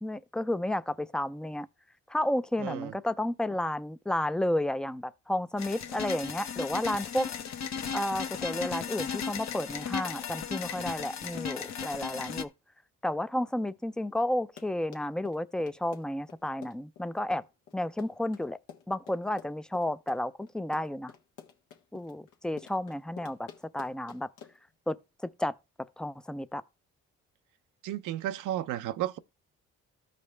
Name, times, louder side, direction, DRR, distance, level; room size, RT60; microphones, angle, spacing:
voice 1, 0.0-1.7 2.1-7.3 7.9-12.5 13.0-17.4 17.7-18.6 18.9-21.1 21.9-23.5 23.7-24.3 24.9-25.0 25.2-25.5 26.0-26.6, left 1 dB, 5° left, 0.4 m, -32 dB
voice 2, 2.6-2.9 27.8-29.2, right 13 dB, 85° right, 0.6 m, -33 dB
sound 1, 5.6-12.4, left 7 dB, 60° left, 0.9 m, -36 dB
Run, 14.3-24.7, left 8 dB, 85° left, 1.2 m, -50 dB
13.5 x 5.2 x 3.2 m
cardioid pair, 90°, 30 cm